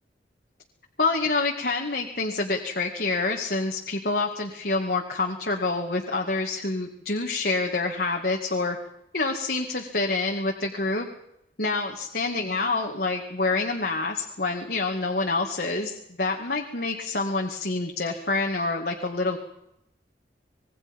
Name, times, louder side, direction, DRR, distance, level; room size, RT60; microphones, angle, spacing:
voice 1, 1.0-8.8 9.1-11.1 11.6-19.4, left 3 dB, 60° left, 1 dB, 2.3 m, -27 dB
26.0 x 21.5 x 5.5 m, 0.80 s
head